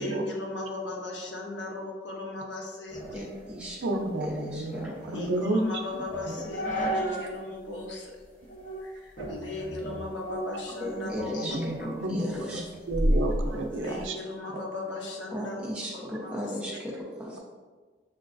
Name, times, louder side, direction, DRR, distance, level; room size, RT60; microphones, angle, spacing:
voice 1, 0.0-3.3 5.1-8.1 8.8-11.9 12.2-12.4 13.7-15.6 15.9-16.6, left 2 dB, 75° left, -1 dB, 0.8 m, -37 dB
sound 1, 2.9-7.4 7.7-7.8 8.5-8.8 9.2-11.2 11.6-14.1, equal, 45° left, 1.0 m, -33 dB
voice 2, 3.1-5.2 10.8-12.6 15.3-17.4, equal, 5° right, -5 dB, 0.7 m, -36 dB
voice 3, 3.8-5.6 6.3-6.4 11.4-14.2, right 1 dB, 90° right, 3 dB, 0.5 m, -31 dB
6.1 x 2.3 x 2.5 m, 1.4 s
head